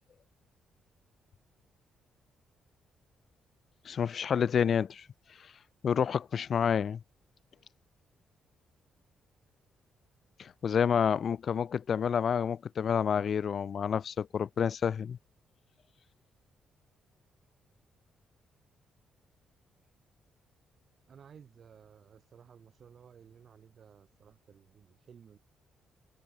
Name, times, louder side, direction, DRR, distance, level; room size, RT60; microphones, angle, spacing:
voice 1, 3.9-5.1 5.8-7.0 10.4-15.2, left 7 dB, 55° left, 0.4 m, -29 dB
voice 2, 21.1-25.4, right 7 dB, 55° right, 7.6 m, -56 dB
cardioid pair, 85°, 0 cm